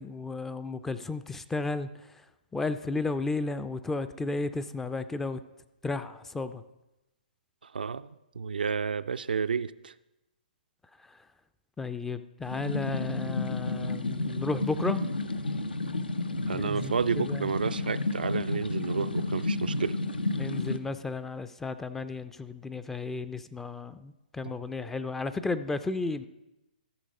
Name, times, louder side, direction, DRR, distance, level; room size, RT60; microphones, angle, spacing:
voice 1, 0.0-1.9 2.5-5.4 5.8-6.6 11.8-15.1 16.5-17.5 20.3-26.3, left 3 dB, 5° left, 12 dB, 0.4 m, -33 dB
voice 2, 7.7-8.1 8.4-9.9 16.5-20.0 24.4-24.5, right 6 dB, 75° right, 12 dB, 0.4 m, -31 dB
sound 1, 12.4-20.8, left 2 dB, 85° left, 0.8 m, -31 dB
13.5 x 6.3 x 5.3 m, 0.96 s
hypercardioid pair, 130°, 5 cm